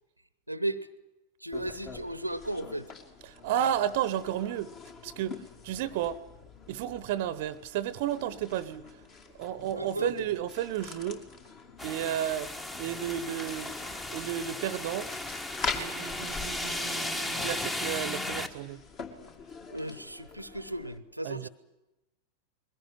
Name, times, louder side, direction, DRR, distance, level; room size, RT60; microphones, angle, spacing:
voice 1, 0.5-0.9 1.4-2.9 9.7-10.3 19.7-21.5, right 1 dB, 90° right, 17 dB, 0.9 m, -35 dB
sound 1, 1.5-21.0, left 4 dB, 35° left, 2.5 m, -44 dB
voice 2, 3.3-4.7 5.0-6.2 6.7-8.9 9.4-11.2 11.8-12.5 12.8-13.7 14.1-15.1 15.7-18.8 21.2-21.5, right 11 dB, 50° right, 19 dB, 0.8 m, -32 dB
sound 2, 11.8-18.5, left 2 dB, 15° left, 1.3 m, -35 dB
21.5 x 17.0 x 10.0 m, 1.0 s
figure-of-eight pair, 90°, 0 cm